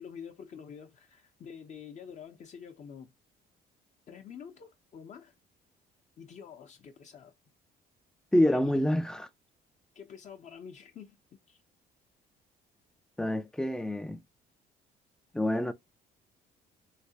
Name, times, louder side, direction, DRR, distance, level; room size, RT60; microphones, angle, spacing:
voice 1, 0.0-3.1 4.1-5.3 6.2-7.4 8.4-8.7 9.9-11.2 11.5-11.6, left 7 dB, 45° left, 0.7 m, -47 dB
voice 2, 8.3-9.3 13.2-14.2 15.3-15.7, left 1 dB, 5° left, 0.3 m, -27 dB
3.3 x 2.8 x 2.7 m
cardioid pair, 110°, 17 cm